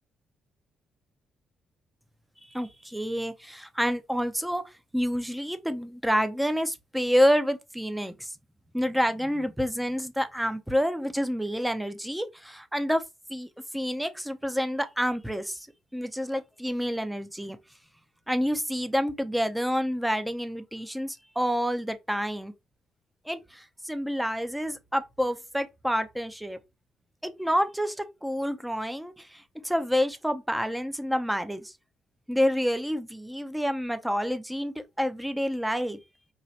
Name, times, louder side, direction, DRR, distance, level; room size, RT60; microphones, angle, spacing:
voice 1, 2.5-4.6 4.9-8.3 8.7-13.0 13.3-15.7 15.9-17.6 18.3-22.5 23.3-26.6 27.2-31.7 32.3-36.0, equal, 5° right, 0.7 m, -28 dB
4.6 x 3.0 x 2.9 m
cardioid pair, 90°, 0 cm